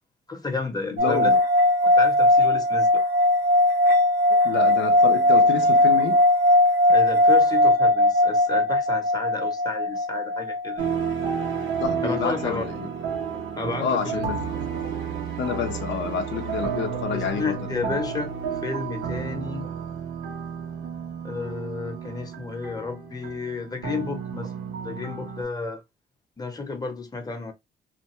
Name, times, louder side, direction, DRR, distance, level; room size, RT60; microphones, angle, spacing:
voice 1, 0.3-1.4 1.8-3.0 6.9-10.9 12.0-12.7 13.6-14.2 17.1-18.3 18.6-19.7 21.2-24.5 24.8-25.8 26.4-27.5, left 4 dB, 20° left, 0.8 m, -32 dB
voice 2, 0.9-1.4 4.3-6.2 11.8-12.9 13.8-14.4 15.4-17.6 17.8-18.0, left 7 dB, 70° left, 0.6 m, -28 dB
sound 1, 1.0-12.3, left 1 dB, 50° right, 0.9 m, -19 dB
sound 2, 10.8-25.4, right 7 dB, 85° right, 0.9 m, -31 dB
2.4 x 2.2 x 3.0 m
cardioid pair, 90°, 20 cm